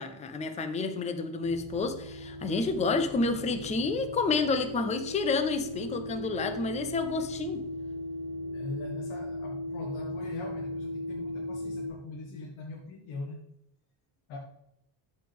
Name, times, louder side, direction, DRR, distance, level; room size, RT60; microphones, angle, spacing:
voice 1, 0.0-7.6, left 3 dB, 15° left, 8 dB, 0.5 m, -29 dB
sound 1, 1.4-11.9, left 1 dB, 20° right, 2.8 m, -37 dB
voice 2, 8.5-13.5 14.3-14.4, left 3 dB, 80° left, -1 dB, 1.8 m, -41 dB
13.5 x 5.3 x 3.4 m, 0.79 s
cardioid pair, 180°, 48 cm